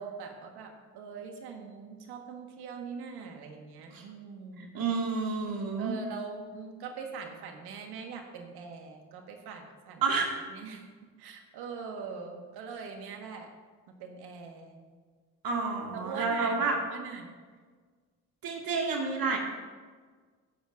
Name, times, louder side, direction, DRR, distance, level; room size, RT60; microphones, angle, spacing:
voice 1, 0.0-4.7 5.8-10.0 10.5-10.8 11.2-13.5 14.0-14.9 15.9-16.6 16.9-17.3, right 5 dB, 80° right, 3 dB, 1.6 m, -42 dB
voice 2, 4.6-5.9 10.0-10.4 15.4-16.8 18.4-19.4, right 4 dB, 60° right, 0 dB, 2.1 m, -30 dB
17.0 x 8.5 x 2.6 m, 1.5 s
supercardioid pair, 70°, 39 cm